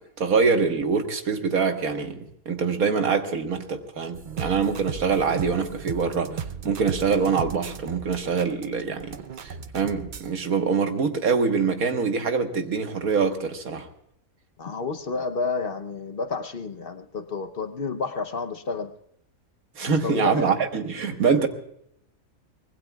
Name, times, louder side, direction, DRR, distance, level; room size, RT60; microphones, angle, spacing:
voice 1, 0.2-6.4 6.6-9.2 9.4-13.9 19.8-21.5, right 5 dB, 90° right, 5 dB, 1.8 m, -24 dB
sound 1, 4.1-10.3, right 7 dB, 45° right, 0.7 m, -36 dB
voice 2, 14.6-18.9 19.8-20.5, left 4 dB, 45° left, 8 dB, 0.9 m, -30 dB
24.0 x 20.0 x 2.3 m, 0.73 s
omnidirectional pair, 1.5 m